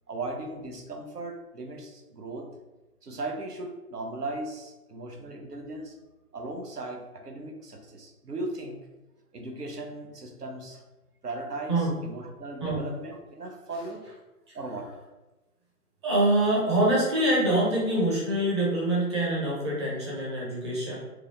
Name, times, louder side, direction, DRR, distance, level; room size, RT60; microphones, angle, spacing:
voice 1, 0.1-2.5 3.0-6.0 6.3-8.8 9.3-10.8 11.2-14.0 14.5-14.9, right 2 dB, 80° right, 3 dB, 0.9 m, -37 dB
voice 2, 16.0-21.0, right 1 dB, 20° right, -6 dB, 0.7 m, -25 dB
4.9 x 2.2 x 3.5 m, 1.1 s
figure-of-eight pair, 140°, 46 cm